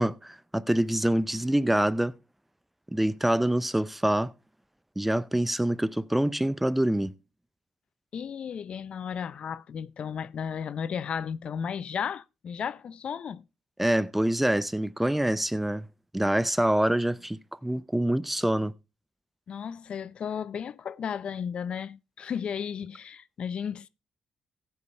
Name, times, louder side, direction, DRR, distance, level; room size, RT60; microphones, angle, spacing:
voice 1, 0.0-2.1 2.9-4.3 5.0-7.1 13.8-15.9 16.1-18.7, right 1 dB, 5° right, 0.6 m, -25 dB
voice 2, 8.1-13.4 19.5-23.9, left 7 dB, 60° left, 0.5 m, -34 dB
15.0 x 8.6 x 3.3 m
cardioid pair, 80°, 2 cm